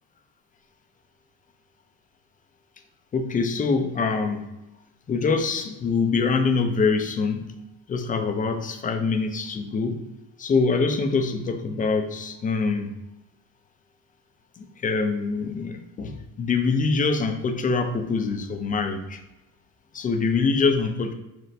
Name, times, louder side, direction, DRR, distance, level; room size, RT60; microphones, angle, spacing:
voice 1, 3.1-4.5 5.1-7.5 7.9-10.0 10.4-12.9 14.6-19.2 19.9-21.1, left 4 dB, 20° left, 5 dB, 0.3 m, -24 dB
5.7 x 2.1 x 2.6 m, 0.97 s
supercardioid pair, 95°, 41 cm